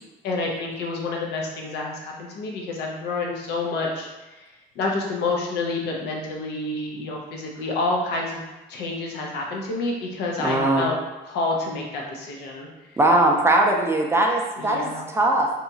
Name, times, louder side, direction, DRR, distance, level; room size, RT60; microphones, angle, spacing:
voice 1, 0.2-4.1 4.8-8.4 8.7-11.0 11.2-12.7 14.6-15.0, left 3 dB, 75° left, -1 dB, 0.6 m, -28 dB
voice 2, 10.4-10.9 13.0-15.5, right 1 dB, 15° right, 0 dB, 0.4 m, -20 dB
2.8 x 2.3 x 2.7 m, 1.1 s
cardioid pair, 110°, 17 cm